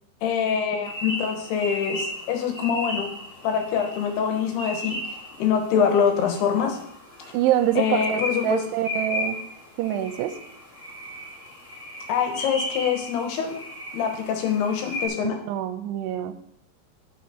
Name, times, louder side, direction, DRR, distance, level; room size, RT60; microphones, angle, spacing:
voice 1, 0.2-3.1 3.4-6.8 7.8-8.6 12.1-13.6 13.9-15.4, left 7 dB, 75° left, 5 dB, 3.0 m, -24 dB
sound 1, 0.8-15.1, left 1 dB, 25° left, 1.9 m, -35 dB
voice 2, 7.3-9.4 9.8-10.4 15.5-16.4, right 12 dB, 85° right, 9 dB, 2.7 m, -25 dB
9.4 x 6.0 x 4.3 m, 0.70 s
omnidirectional pair, 4.8 m